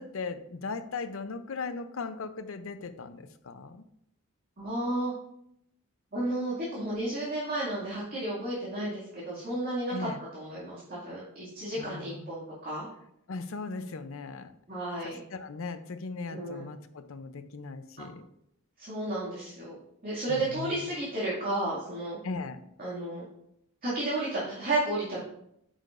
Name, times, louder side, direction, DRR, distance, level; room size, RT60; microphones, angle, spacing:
voice 1, 0.0-3.8 9.9-10.2 11.8-12.3 13.3-14.5 15.0-18.3 20.3-20.8 22.2-22.6, left 4 dB, 70° left, 10 dB, 0.6 m, -38 dB
voice 2, 4.6-5.1 6.1-12.9 14.7-15.2 16.3-16.6 18.0-18.1 18.8-19.8 20.0-22.2 22.8-23.2 23.8-25.2, right 1 dB, 40° right, -8 dB, 2.3 m, -32 dB
8.8 x 6.5 x 2.6 m, 0.75 s
head